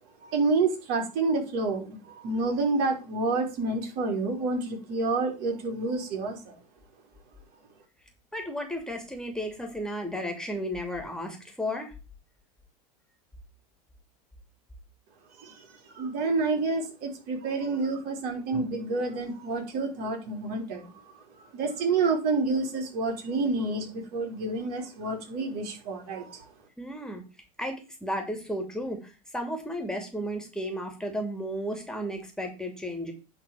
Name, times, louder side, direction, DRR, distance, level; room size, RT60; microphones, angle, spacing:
voice 1, 0.2-6.5 15.4-21.2 21.5-26.4, right 3 dB, 55° right, 2 dB, 3.8 m, -29 dB
voice 2, 8.3-11.9 26.8-27.2 27.6-33.1, equal, 5° left, 3 dB, 2.6 m, -33 dB
10.0 x 4.1 x 7.4 m, 0.31 s
hypercardioid pair, 80°, 20 cm